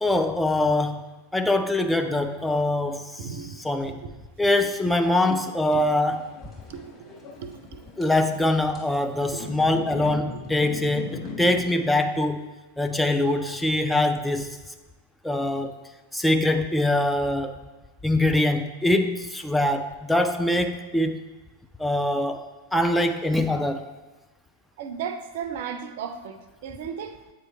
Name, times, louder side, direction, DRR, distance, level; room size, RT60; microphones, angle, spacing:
voice 1, 0.0-1.0 1.3-4.0 4.4-6.2 8.0-12.5 12.8-14.6 15.2-15.7 16.1-17.5 18.0-21.2 21.8-22.4 22.7-23.9, left 1 dB, 5° left, 5 dB, 0.3 m, -23 dB
voice 2, 3.2-3.6 3.8-4.0 5.7-5.8 6.7-6.8 7.4-7.8 9.3-9.5 10.3-10.4 24.8-27.1, right 7 dB, 50° right, 9 dB, 0.5 m, -35 dB
sound 1, 6.0-11.7, left 4 dB, 20° left, 1.5 m, -40 dB
8.0 x 3.1 x 4.3 m, 1.2 s
figure-of-eight pair, 90°, 0 cm